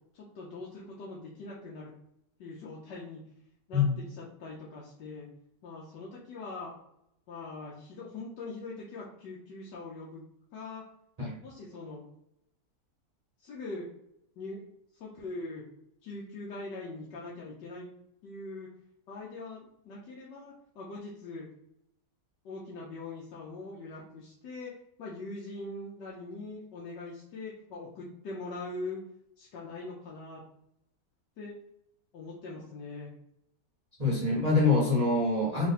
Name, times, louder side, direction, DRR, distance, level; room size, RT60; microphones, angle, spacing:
voice 1, 0.1-1.9 2.4-3.2 3.7-5.3 5.6-6.7 7.3-10.2 10.5-10.9 11.4-12.0 13.4-13.9 14.4-14.6 14.9-15.6 16.0-17.9 18.2-18.7 19.1-21.5 22.4-24.7 25.0-29.0 29.4-30.4 31.4-31.5 32.1-33.1, left 3 dB, 80° left, -5 dB, 1.4 m, -42 dB
voice 2, 34.0-35.7, left 3 dB, 30° right, -6 dB, 0.8 m, -25 dB
3.7 x 2.5 x 4.1 m, 0.81 s
omnidirectional pair, 1.9 m